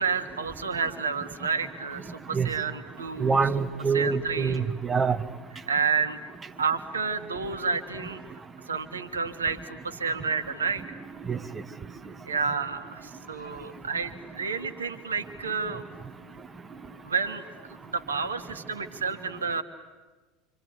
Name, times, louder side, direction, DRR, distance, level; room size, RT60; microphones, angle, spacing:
voice 1, 0.0-3.3 3.9-4.6 5.7-6.2 6.6-8.2 8.7-11.0 12.3-15.8 17.0-19.6, right 5 dB, 85° right, 9 dB, 1.6 m, -30 dB
voice 2, 3.2-5.2 11.3-11.4, right 5 dB, 20° right, 8 dB, 1.5 m, -25 dB
27.5 x 26.0 x 8.4 m, 1.3 s
figure-of-eight pair, 75°, 0 cm